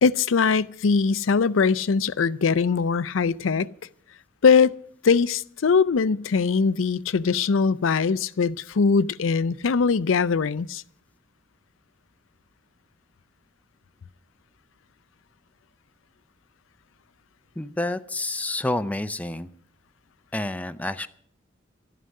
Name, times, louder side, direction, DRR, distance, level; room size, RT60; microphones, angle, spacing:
voice 1, 0.0-3.7 4.4-4.8 5.0-10.8, left 5 dB, 80° left, 0.5 m, -21 dB
voice 2, 17.6-19.5 20.3-21.1, left 2 dB, 10° left, 0.5 m, -29 dB
12.5 x 11.0 x 6.5 m
head